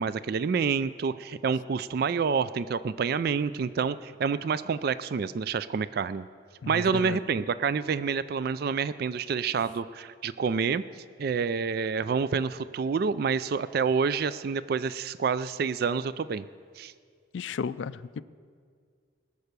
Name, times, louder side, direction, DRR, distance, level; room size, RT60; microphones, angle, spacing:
voice 1, 0.0-6.2 6.7-10.8 11.2-16.4 16.8-16.9, right 5 dB, 50° right, 15 dB, 0.3 m, -28 dB
voice 2, 6.6-7.2 17.3-18.2, left 6 dB, 65° left, 16 dB, 0.4 m, -34 dB
20.0 x 6.7 x 6.7 m, 2.1 s
head